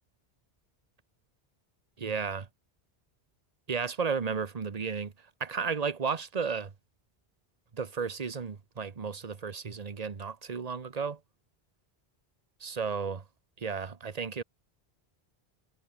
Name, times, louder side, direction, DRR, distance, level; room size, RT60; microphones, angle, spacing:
voice 1, 2.0-2.5 3.7-6.7 7.7-11.2 12.6-13.3 13.6-14.4, right 5 dB, 40° right, 1.1 m, -33 dB
omnidirectional pair, 1.1 m